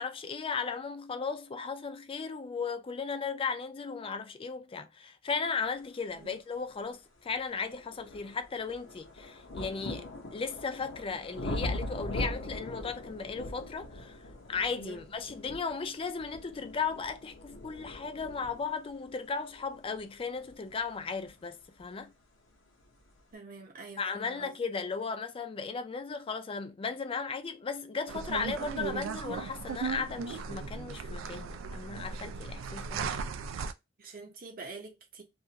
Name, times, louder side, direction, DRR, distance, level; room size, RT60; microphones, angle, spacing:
voice 1, 0.0-10.1 10.3-14.2 14.5-22.1 24.0-33.1, left 5 dB, 30° left, 0.4 m, -36 dB
sound 1, 6.6-6.7 7.3-21.9 22.8-22.9, left 1 dB, 70° left, 0.8 m, -41 dB
voice 2, 23.3-24.5 34.0-35.2, right 4 dB, 50° right, 0.8 m, -46 dB
sound 2, 28.1-33.7, right 5 dB, 85° right, 0.3 m, -37 dB
2.5 x 2.4 x 2.8 m
head